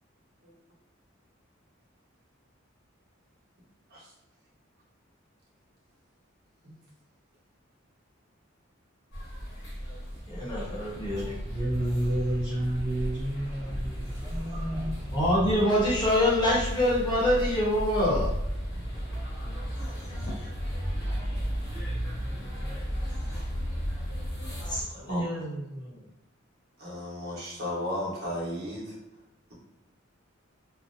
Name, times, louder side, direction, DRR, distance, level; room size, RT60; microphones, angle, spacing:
sound 1, 9.1-24.8, equal, 60° left, 1.0 m, -34 dB
voice 1, 10.3-11.4 15.1-18.3 24.7-26.0, left 1 dB, 20° left, -7 dB, 0.9 m, -26 dB
voice 2, 11.5-15.2, right 1 dB, 20° right, -7 dB, 0.4 m, -30 dB
voice 3, 26.8-28.8, left 1 dB, 50° right, -5 dB, 1.0 m, -34 dB
2.7 x 2.0 x 2.5 m, 0.94 s
head